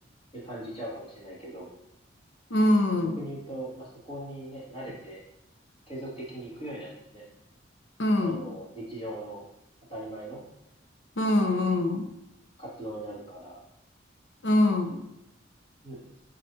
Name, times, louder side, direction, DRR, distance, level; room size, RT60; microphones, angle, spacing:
voice 1, 0.3-1.7 3.2-5.2 5.9-7.3 8.2-9.4 9.9-10.4 11.3-11.4 12.6-13.6 15.8-16.1, right 1 dB, 30° left, -7 dB, 2.4 m, -40 dB
voice 2, 2.5-3.2 8.0-8.4 11.2-12.1 14.4-15.0, left 1 dB, 70° left, 5 dB, 0.8 m, -23 dB
9.9 x 4.2 x 2.8 m, 0.86 s
head